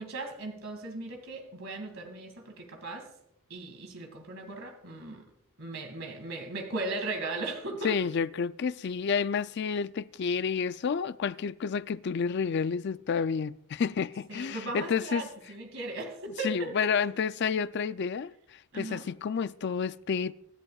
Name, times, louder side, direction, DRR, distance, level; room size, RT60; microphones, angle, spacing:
voice 1, 0.0-3.1 3.5-5.2 5.6-8.0 14.3-16.8 18.7-19.1, right 2 dB, 65° right, 2.2 m, -37 dB
voice 2, 7.8-15.2 16.4-20.3, left 6 dB, 50° left, 0.4 m, -30 dB
24.5 x 10.5 x 2.4 m
head